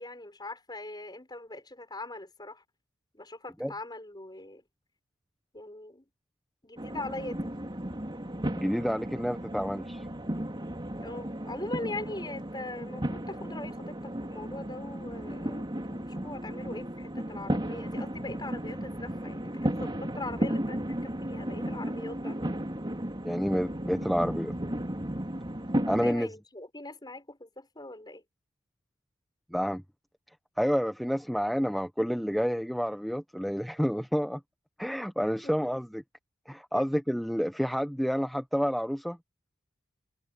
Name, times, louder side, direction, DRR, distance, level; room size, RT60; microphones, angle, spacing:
voice 1, 0.0-2.6 3.1-4.6 5.5-6.0 6.6-7.5 11.0-22.4 26.0-28.2 35.4-35.7 36.7-36.8, left 2 dB, 20° left, 5.6 m, -41 dB
sound 1, 6.8-26.1, right 1 dB, 20° right, 3.3 m, -34 dB
voice 2, 8.5-10.0 23.2-24.5 25.9-26.3 29.5-29.8 30.6-34.4 34.8-36.0 36.5-39.2, equal, ahead, 1.0 m, -29 dB
head